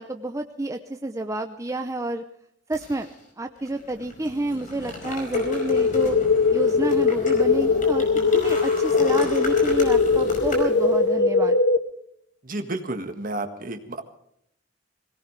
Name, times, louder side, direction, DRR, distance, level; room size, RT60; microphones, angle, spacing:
voice 1, 0.0-2.2 2.7-3.1 3.4-6.2 6.5-8.1 8.3-11.6, right 2 dB, 15° right, 6 dB, 0.6 m, -29 dB
sound 1, 2.7-3.2 3.6-10.6, left 1 dB, 45° left, 5.2 m, -36 dB
sound 2, 5.3-11.8, left 4 dB, 65° left, 0.9 m, -20 dB
voice 2, 12.4-14.0, right 2 dB, 45° right, 6 dB, 1.8 m, -31 dB
21.5 x 17.5 x 3.3 m, 0.74 s
head